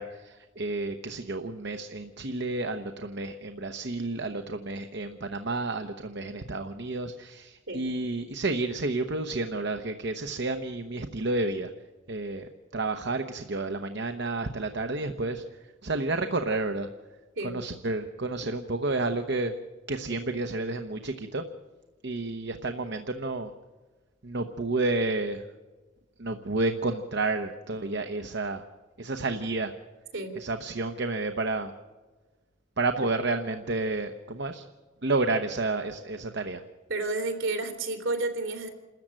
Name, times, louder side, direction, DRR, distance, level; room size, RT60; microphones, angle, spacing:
voice 1, 0.0-11.7 12.1-15.4 15.8-16.9 17.4-19.5 19.9-21.4 22.0-23.5 24.2-25.4 26.2-28.6 29.0-29.7 30.3-31.7 32.8-34.6 35.0-36.6, right 2 dB, 60° right, 7 dB, 1.0 m, -30 dB
voice 2, 36.9-38.7, right 2 dB, 75° right, 6 dB, 3.4 m, -31 dB
28.0 x 14.0 x 9.0 m, 1.3 s
head